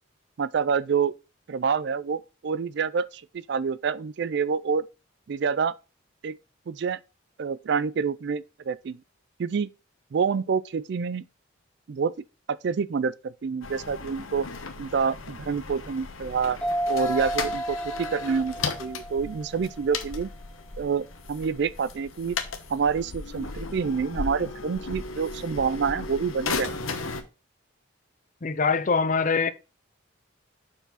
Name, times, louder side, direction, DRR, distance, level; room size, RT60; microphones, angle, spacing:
voice 1, 0.4-1.1 1.5-4.8 5.3-5.7 6.2-6.4 6.7-7.0 7.4-9.0 9.4-9.7 10.1-11.2 11.9-12.1 12.5-14.5 14.8-16.6 16.9-20.3 20.8-22.4 22.7-26.7, right 6 dB, 55° right, 0.3 m, -27 dB
sound 1, 13.6-27.2, left 4 dB, 90° left, 1.1 m, -36 dB
sound 2, 16.6-19.9, right 1 dB, 5° left, 1.4 m, -31 dB
voice 2, 28.4-29.5, left 5 dB, 40° left, 0.6 m, -23 dB
5.7 x 4.7 x 5.6 m
head